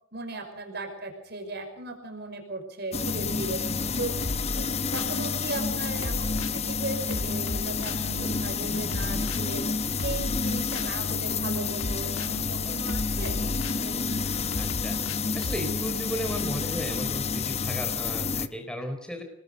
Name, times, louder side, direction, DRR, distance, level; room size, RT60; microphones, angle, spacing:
voice 1, 0.1-3.6 4.0-4.2 4.6-9.7 10.0-13.5 13.8-14.2, right 2 dB, 50° right, 5 dB, 5.4 m, -37 dB
sound 1, 2.9-18.5, left 5 dB, 30° left, 0.9 m, -29 dB
sound 2, 4.2-5.2 6.0-6.6 7.1-8.1 8.9-9.4 10.0-11.0 11.8-12.4 12.9-13.9 14.5-15.6, left 1 dB, 70° left, 1.4 m, -34 dB
voice 2, 14.6-14.9 15.3-19.2, equal, 5° left, 4 dB, 4.1 m, -35 dB
30.0 x 20.5 x 5.3 m, 0.64 s
head